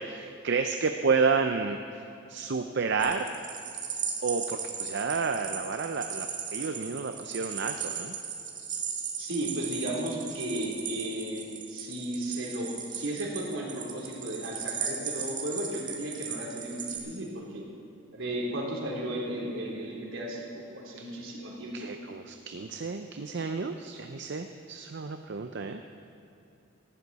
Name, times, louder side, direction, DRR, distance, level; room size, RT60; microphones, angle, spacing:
voice 1, 0.0-3.3 4.2-8.1 21.0-21.1 21.7-25.8, right 4 dB, 60° right, 6 dB, 0.6 m, -31 dB
sound 1, 3.0-17.0, right 6 dB, 40° right, 1.9 m, -37 dB
voice 2, 9.2-17.6 18.1-21.7, right 1 dB, 80° right, -3 dB, 3.4 m, -34 dB
17.5 x 14.5 x 4.2 m, 2.7 s
head